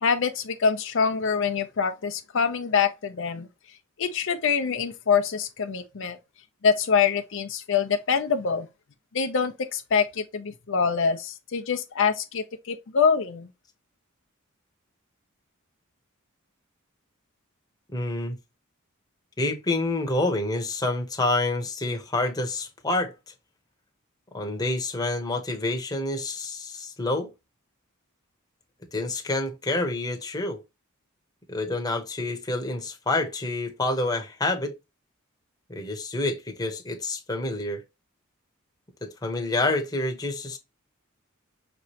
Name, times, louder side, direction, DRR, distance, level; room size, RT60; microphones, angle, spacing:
voice 1, 0.0-3.5 4.0-6.2 6.6-8.7 9.1-13.5, left 6 dB, 60° left, 0.6 m, -25 dB
voice 2, 17.9-18.4 19.4-23.1 24.3-27.3 28.9-30.6 31.5-34.7 35.7-37.8 39.0-40.6, left 2 dB, 20° left, 0.9 m, -28 dB
5.8 x 3.1 x 2.8 m
head